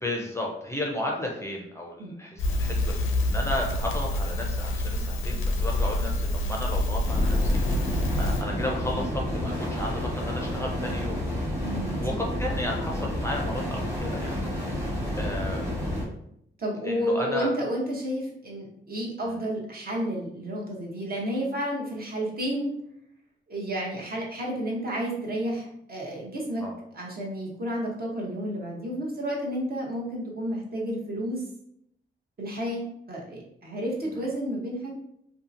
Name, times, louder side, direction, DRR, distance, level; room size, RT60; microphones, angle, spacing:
voice 1, 0.0-11.2 12.0-15.7 16.8-17.5 19.2-19.4 26.6-26.7, left 1 dB, 15° left, -1 dB, 0.5 m, -34 dB
Crackle, 2.4-8.4, left 1 dB, 80° left, 0.5 m, -26 dB
sound 1, 7.1-16.0, left 1 dB, 15° right, 1.0 m, -30 dB
voice 2, 11.6-12.2 16.6-22.7 23.5-26.6 26.9-31.4 32.4-34.9, equal, 50° right, -2 dB, 0.8 m, -31 dB
2.7 x 2.4 x 2.5 m, 0.74 s
cardioid pair, 90°, 21 cm